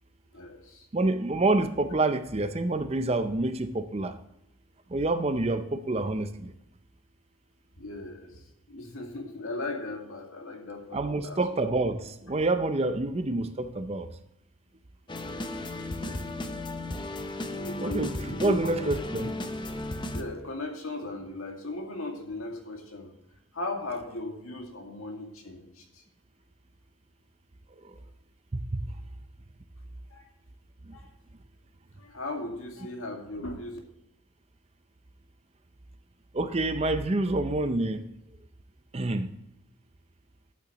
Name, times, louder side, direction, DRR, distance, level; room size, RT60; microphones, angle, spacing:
voice 1, 0.3-0.9 7.8-11.4 16.0-16.3 17.5-19.0 19.2-19.4 20.1-23.1 23.5-26.0 30.1-30.3 30.9-31.1 32.0-33.8, left 2 dB, 75° left, 2.1 m, -37 dB
voice 2, 0.9-4.2 4.9-6.5 10.9-14.1 17.8-19.3 28.5-28.8 30.9-31.0 36.3-38.0 38.9-39.3, right 2 dB, 30° right, 0.5 m, -27 dB
sound 1, 15.1-20.2, left 1 dB, 20° left, 0.6 m, -35 dB
12.5 x 8.4 x 3.0 m
head